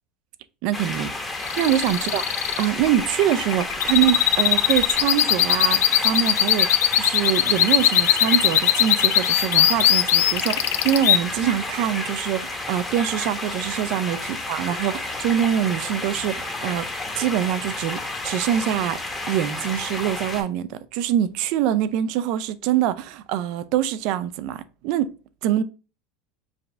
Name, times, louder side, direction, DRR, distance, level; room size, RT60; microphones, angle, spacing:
voice 1, 0.6-1.1 1.6-2.2 2.6-14.2 14.5-16.9 17.1-19.0 19.3-25.1 25.4-25.6, right 11 dB, 65° right, 0.4 m, -24 dB
sound 1, 0.7-20.4, left 2 dB, 15° left, 1.0 m, -31 dB
sound 2, 1.4-11.2, left 12 dB, 90° left, 0.3 m, -19 dB
4.9 x 2.5 x 3.3 m
supercardioid pair, 120°, 0 cm